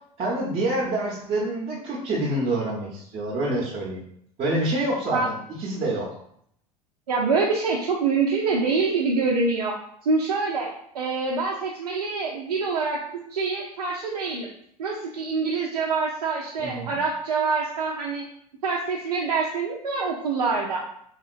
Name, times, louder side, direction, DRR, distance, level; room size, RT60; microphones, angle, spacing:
voice 1, 0.2-4.0 4.4-6.1 16.6-17.0, right 1 dB, 30° right, -4 dB, 0.7 m, -27 dB
voice 2, 7.1-9.7 10.0-10.7 10.9-13.0 13.3-14.5 14.8-18.2 18.6-20.8, right 4 dB, 80° right, -3 dB, 0.5 m, -25 dB
2.9 x 2.8 x 2.4 m, 0.68 s
figure-of-eight pair, 75°, 20 cm